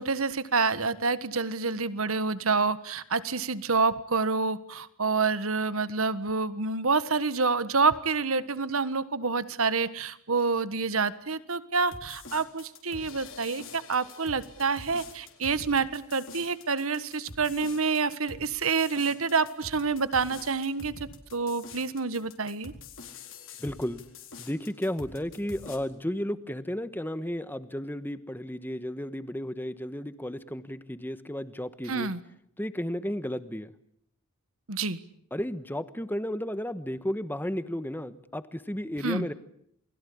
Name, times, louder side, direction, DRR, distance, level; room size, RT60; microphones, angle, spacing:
voice 1, 0.0-22.7 31.8-32.2 34.7-35.0 39.0-39.3, right 4 dB, 75° right, 14 dB, 1.5 m, -28 dB
sound 1, 11.9-25.8, left 4 dB, 65° left, 4.2 m, -46 dB
voice 2, 23.6-24.0 24.4-32.1 32.6-33.7 35.3-39.3, equal, 10° left, 13 dB, 1.2 m, -33 dB
29.0 x 21.5 x 8.6 m, 0.69 s
head